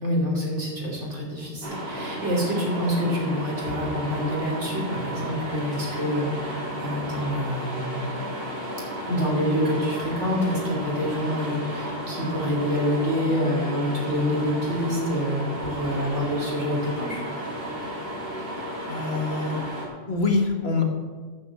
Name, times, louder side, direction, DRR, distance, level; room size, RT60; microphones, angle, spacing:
voice 1, 0.0-8.3 9.1-17.2, equal, 75° right, -3 dB, 3.4 m, -27 dB
sound 1, 1.6-19.9, equal, 50° right, 2.4 m, -33 dB
voice 2, 18.9-19.6 20.1-20.8, left 3 dB, 60° left, 3 dB, 1.6 m, -25 dB
11.5 x 5.8 x 7.7 m, 1.5 s
omnidirectional pair, 1.2 m